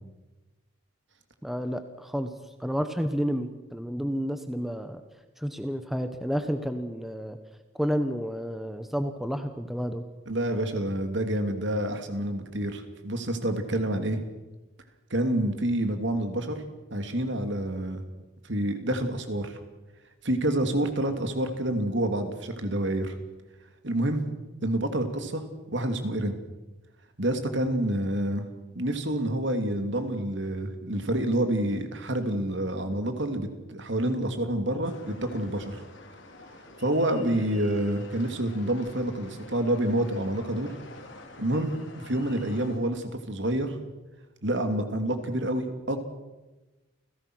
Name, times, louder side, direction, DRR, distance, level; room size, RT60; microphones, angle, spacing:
voice 1, 1.4-2.3 2.6-5.0 5.4-7.4 7.7-10.0, equal, ahead, 8 dB, 1.1 m, -30 dB
voice 2, 10.3-14.2 15.1-16.6 16.9-18.0 18.4-19.6 20.2-23.1 23.8-24.2 24.6-26.4 27.2-28.4 28.7-35.8 36.8-40.7 41.4-41.7 42.0-43.8 44.4-46.0, right 1 dB, 60° right, 7 dB, 2.8 m, -28 dB
sound 1, 34.8-42.8, left 2 dB, 70° left, 3.5 m, -48 dB
29.5 x 17.0 x 6.4 m, 1.1 s
head